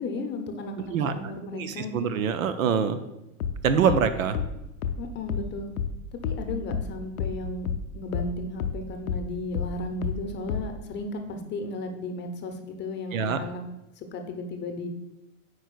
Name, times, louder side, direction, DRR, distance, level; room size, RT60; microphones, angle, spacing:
voice 1, 0.0-2.1 4.3-4.4 5.0-5.7 6.1-7.7 7.9-13.6 14.0-14.9, left 2 dB, 25° left, 5 dB, 0.8 m, -34 dB
voice 2, 1.5-3.0 3.6-4.4 13.1-13.4, right 7 dB, 70° right, 11 dB, 0.6 m, -24 dB
sound 1, 3.4-8.3 8.6-10.8, left 6 dB, 80° left, 0.6 m, -30 dB
8.7 x 4.7 x 2.4 m, 0.91 s
figure-of-eight pair, 90°, 42 cm